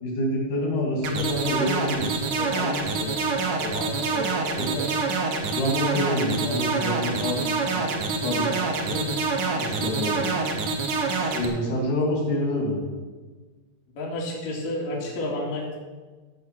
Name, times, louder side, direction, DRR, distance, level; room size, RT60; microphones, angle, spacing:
voice 1, 0.0-3.2 3.6-4.3 4.6-4.9 5.5-7.9 8.2-9.1 9.6-10.4 11.0-12.9, left 1 dB, 85° left, -1 dB, 4.2 m, -28 dB
sound 1, 1.0-11.5, right 4 dB, 70° right, 2.8 m, -26 dB
voice 2, 14.0-15.8, left 1 dB, 60° left, -4 dB, 3.4 m, -30 dB
15.0 x 5.2 x 7.7 m, 1.3 s
omnidirectional pair, 3.6 m